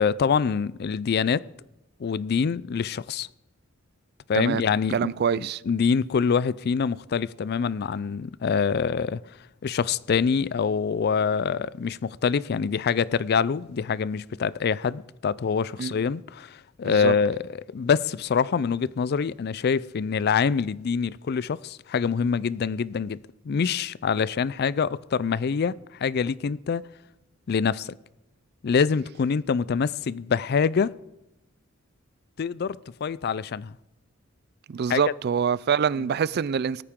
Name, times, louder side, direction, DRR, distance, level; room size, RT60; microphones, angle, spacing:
voice 1, 0.0-1.5 2.0-3.3 4.3-9.2 9.6-26.8 27.5-27.9 28.6-31.0 32.4-33.7 34.9-35.0, left 6 dB, 50° left, 0.4 m, -25 dB
voice 2, 4.9-5.6 15.8-15.9 16.8-17.1 34.7-36.8, right 7 dB, 50° right, 0.4 m, -25 dB
18.0 x 14.0 x 3.7 m
head